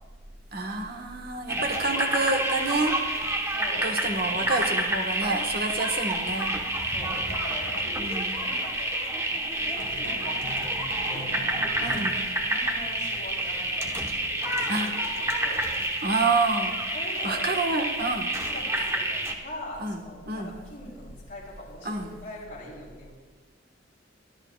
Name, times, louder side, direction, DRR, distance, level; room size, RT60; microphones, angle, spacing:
voice 1, 0.5-2.9 3.8-6.5 8.0-8.4 11.8-12.2 14.7-14.9 16.0-16.7 17.2-18.3 19.8-20.0 20.3-20.5 21.8-22.1, right 3 dB, 55° right, 3 dB, 1.5 m, -28 dB
voice 2, 1.5-2.0 3.5-4.6 6.9-8.9 9.3-11.8 12.4-14.8 15.2-15.6 16.9-17.5 18.5-19.1 19.4-23.1, left 1 dB, 40° left, -7 dB, 3.8 m, -42 dB
sound 1, 1.5-19.3, right 1 dB, 15° right, 1.3 m, -29 dB
sound 2, 9.8-13.1, right 1 dB, 75° right, 2.4 m, -41 dB
24.5 x 13.0 x 2.5 m, 1.4 s
head